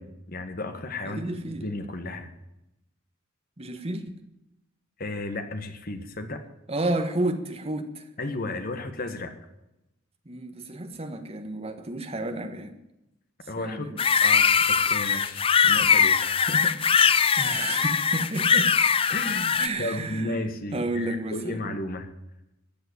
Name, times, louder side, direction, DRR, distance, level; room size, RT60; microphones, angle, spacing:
voice 1, 0.0-2.3 5.0-6.4 8.2-9.3 13.5-16.8 19.1-22.1, left 2 dB, 45° left, 7 dB, 1.7 m, -34 dB
voice 2, 1.0-1.6 3.6-4.1 6.7-8.1 10.2-12.7 13.6-14.0 17.4-18.7 19.6-20.5 20.7-21.8, right 2 dB, 30° right, 7 dB, 1.5 m, -31 dB
Steel String Polishing, 14.0-19.7, left 6 dB, 25° left, 0.5 m, -21 dB
13.5 x 8.0 x 9.7 m, 0.90 s
head